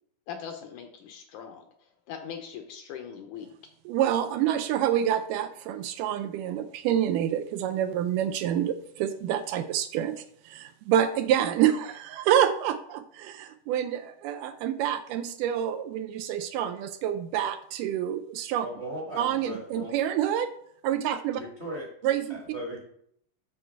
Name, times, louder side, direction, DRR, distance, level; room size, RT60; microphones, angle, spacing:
voice 1, 0.3-1.6 2.1-3.5, left 7 dB, 75° left, 5 dB, 2.0 m, -40 dB
voice 2, 3.9-18.7 19.2-20.5 20.8-21.4 22.0-22.4, right 10 dB, 80° right, 8 dB, 2.0 m, -27 dB
voice 3, 18.6-19.9 21.4-21.9 22.3-22.8, right 1 dB, 35° right, -1 dB, 1.1 m, -37 dB
7.1 x 6.4 x 4.5 m, 0.68 s
omnidirectional pair, 4.0 m